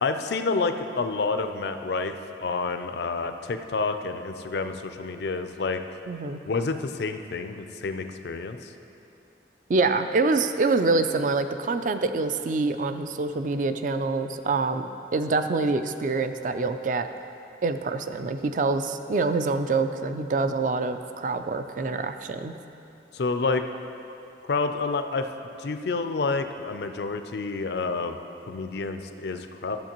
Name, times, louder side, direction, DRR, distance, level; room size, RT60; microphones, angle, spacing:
voice 1, 0.0-5.8 6.5-8.7 23.1-23.7 24.5-25.3 25.6-28.2 28.5-29.8, left 4 dB, 65° left, 8 dB, 0.4 m, -29 dB
voice 2, 6.1-6.4 9.7-17.1 17.6-22.5, right 3 dB, 45° right, 9 dB, 0.3 m, -26 dB
13.0 x 7.3 x 3.0 m, 2.8 s
head